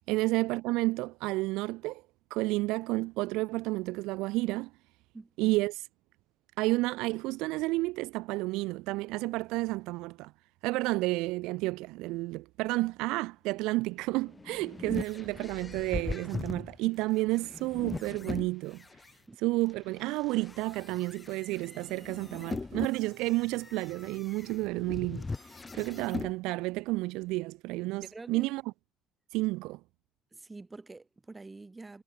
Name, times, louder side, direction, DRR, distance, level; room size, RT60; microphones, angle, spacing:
voice 1, 0.1-2.0 2.3-4.7 5.4-5.8 6.6-10.3 10.6-18.8 19.4-28.6 29.3-29.8, right 21 dB, 85° right, 0.3 m, -31 dB
voice 2, 5.1-5.6 19.3-19.4 28.0-28.5 30.3-32.0, right 3 dB, 10° right, 1.5 m, -47 dB
sound 1, 14.1-19.1 19.7-26.3, left 3 dB, 10° left, 0.3 m, -40 dB
sound 2, 21.5-26.4, right 12 dB, 45° right, 3.2 m, -70 dB
cardioid pair, 180°, 0 cm